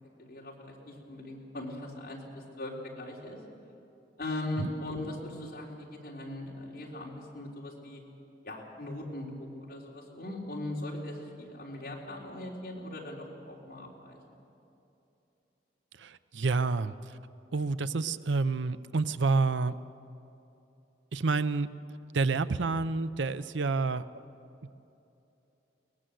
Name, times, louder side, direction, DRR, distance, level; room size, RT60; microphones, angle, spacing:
voice 1, 0.2-3.4 4.2-8.0 8.4-14.2, left 1 dB, 50° left, -2 dB, 3.7 m, -39 dB
voice 2, 16.0-16.9 17.5-19.8 21.1-21.7 22.1-24.1, right 3 dB, 85° right, 14 dB, 0.6 m, -28 dB
22.0 x 19.5 x 7.8 m, 2.8 s
head